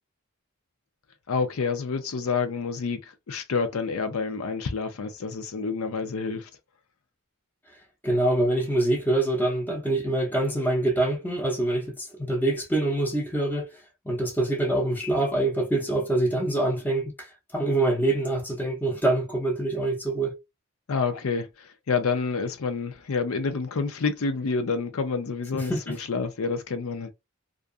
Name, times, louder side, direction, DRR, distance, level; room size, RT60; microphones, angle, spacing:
voice 1, 1.3-6.5 20.9-27.1, left 4 dB, 75° left, 0.5 m, -28 dB
voice 2, 8.0-20.4 25.5-25.9, right 2 dB, 10° left, 0.7 m, -25 dB
2.5 x 2.3 x 2.4 m
head